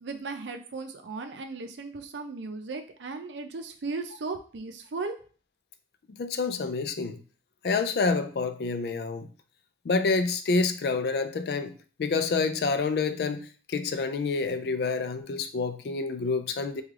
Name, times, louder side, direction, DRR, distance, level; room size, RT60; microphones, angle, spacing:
voice 1, 0.0-5.2, right 3 dB, 85° right, 0.5 m, -36 dB
voice 2, 6.1-7.2 7.6-9.3 9.8-16.8, left 4 dB, 60° left, 0.3 m, -28 dB
3.2 x 2.3 x 3.6 m
head